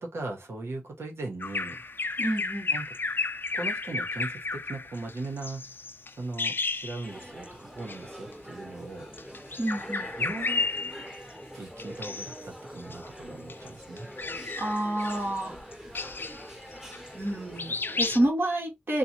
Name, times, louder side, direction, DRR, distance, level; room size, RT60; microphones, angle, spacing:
voice 1, 0.0-1.8 2.7-2.9 3.5-5.7 6.2-9.1 10.2-10.6 11.5-14.1, right 2 dB, 85° right, 1.2 m, -38 dB
Bird vocalization bird call bird song, 1.4-7.5 7.8-8.0 9.0-11.3 11.8-12.4 12.8-17.3 17.6-18.2, left 3 dB, 60° left, 0.5 m, -33 dB
voice 2, 2.2-2.7 9.6-10.1 14.5-15.9 17.1-19.0, right 1 dB, 55° right, 1.8 m, -29 dB
sound 1, 7.0-18.3, equal, 10° right, 1.1 m, -44 dB
3.9 x 2.4 x 2.9 m
cardioid pair, 40°, 4 cm